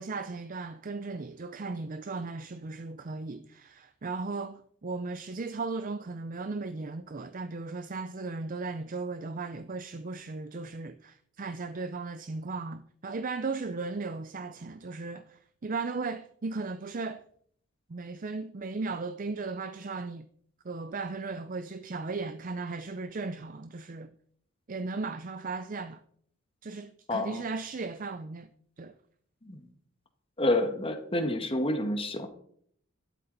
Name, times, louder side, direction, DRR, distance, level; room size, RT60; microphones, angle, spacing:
voice 1, 0.0-17.2 17.9-20.3 20.6-24.1 24.7-26.0 26.6-28.5 28.8-28.9, right 3 dB, 40° right, 0.5 m, -36 dB
voice 2, 27.1-27.4 29.4-29.6 30.4-32.3, left 1 dB, 25° left, 1.6 m, -28 dB
12.5 x 12.0 x 4.1 m
head